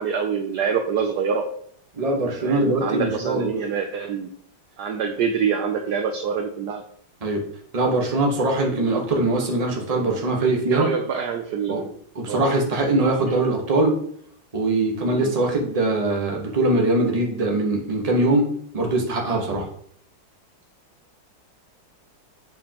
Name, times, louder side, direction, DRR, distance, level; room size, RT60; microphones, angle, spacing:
voice 1, 0.0-1.5 2.4-4.3 4.8-6.8 10.4-11.9 12.3-12.5 15.1-15.3, right 6 dB, 70° right, 6 dB, 1.0 m, -25 dB
voice 2, 2.0-3.5 7.2-7.4 7.7-10.9 11.7-11.8 12.1-14.0 14.5-19.7, right 2 dB, 25° right, 1 dB, 1.0 m, -22 dB
8.0 x 5.0 x 2.9 m, 0.63 s
omnidirectional pair, 2.2 m